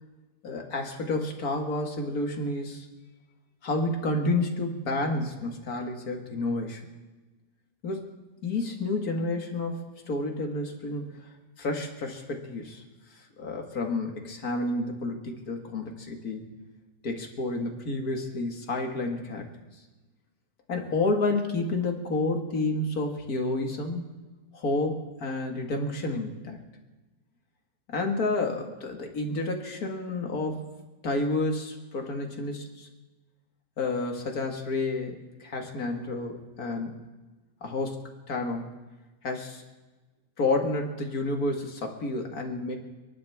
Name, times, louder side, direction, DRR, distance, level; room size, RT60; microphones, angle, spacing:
voice 1, 0.4-2.9 3.6-6.9 7.8-8.1 8.4-9.8 10.1-11.1 11.6-12.8 13.1-16.5 17.0-19.5 20.7-24.0 24.5-26.6 27.9-30.6 31.0-32.9 33.8-36.9 37.6-38.0 38.3-38.7 39.2-39.6 40.4-42.8, left 2 dB, 75° left, 3 dB, 2.3 m, -30 dB
29.5 x 11.5 x 3.5 m, 1.2 s
omnidirectional pair, 1.6 m